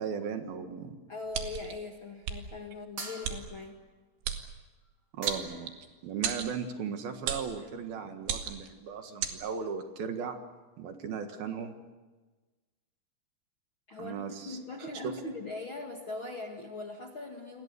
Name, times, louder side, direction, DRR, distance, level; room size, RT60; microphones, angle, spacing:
voice 1, 0.0-1.0 5.1-5.7 6.0-10.4 10.8-11.7 14.0-14.9, right 6 dB, 65° right, 6 dB, 3.2 m, -37 dB
voice 2, 1.1-3.8 7.6-7.7 13.9-17.6, left 3 dB, 40° left, 2 dB, 1.9 m, -40 dB
sound 1, 1.3-1.7 2.2-2.4 3.2-3.4 4.2-4.4 5.3-5.9 6.2-6.5 7.3-7.5 8.2-8.7 9.2-9.4, right 9 dB, 85° right, 4.2 m, -33 dB
sound 2, 3.0-3.8 4.9-5.0 5.2-5.8, right 3 dB, 25° right, 2.7 m, -44 dB
29.0 x 23.5 x 6.9 m, 1.2 s
omnidirectional pair, 5.1 m